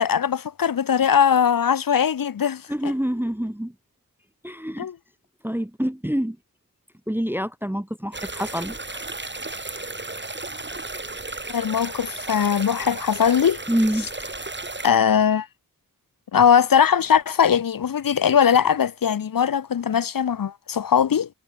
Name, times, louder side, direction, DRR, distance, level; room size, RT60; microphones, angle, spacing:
voice 1, 0.0-2.9 4.8-5.0 11.5-13.6 14.8-15.5 16.3-21.3, left 8 dB, 65° left, 0.5 m, -20 dB
voice 2, 2.7-3.7 4.4-4.9 5.4-6.4 7.1-9.0 13.7-14.1, equal, 5° right, 0.5 m, -26 dB
sound 1, 8.1-14.9, right 2 dB, 30° right, 1.4 m, -34 dB
wide cardioid pair, 45°, 37 cm